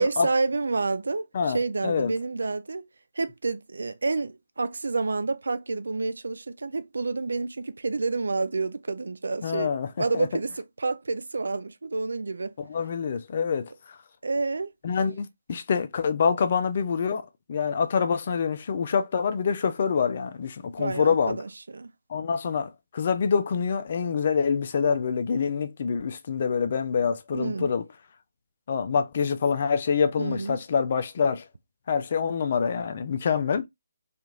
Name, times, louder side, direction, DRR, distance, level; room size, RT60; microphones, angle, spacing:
voice 1, 0.0-2.9 3.2-12.5 14.2-14.7 20.8-21.9 27.3-27.7 30.2-30.6, right 3 dB, 70° right, 0.3 m, -29 dB
voice 2, 9.4-9.9 10.1-10.3 12.6-13.7 14.8-21.4 22.1-27.8 28.7-31.4 31.9-33.6, left 6 dB, 45° left, 0.4 m, -26 dB
2.9 x 2.5 x 2.3 m
figure-of-eight pair, 145°, 0 cm